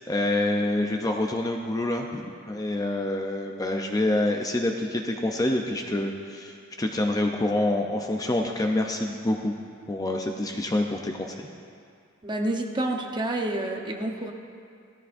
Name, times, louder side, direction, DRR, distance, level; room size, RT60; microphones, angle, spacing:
voice 1, 0.1-9.5 9.9-11.5, left 1 dB, 15° left, 2 dB, 0.5 m, -27 dB
voice 2, 12.2-14.3, right 1 dB, 20° right, 2 dB, 0.9 m, -28 dB
16.5 x 13.0 x 2.6 m, 2.3 s
head